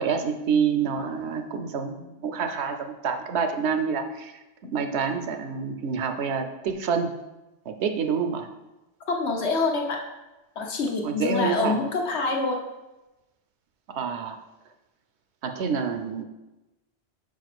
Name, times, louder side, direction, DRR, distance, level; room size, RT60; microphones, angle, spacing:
voice 1, 0.0-4.4 4.7-7.1 7.7-8.5 11.0-11.8 13.9-14.4 15.4-16.2, right 6 dB, 80° right, 7 dB, 1.0 m, -27 dB
voice 2, 9.1-10.0 10.6-12.6, left 3 dB, 80° left, 1 dB, 1.3 m, -26 dB
4.9 x 4.9 x 6.0 m, 1.0 s
omnidirectional pair, 1.1 m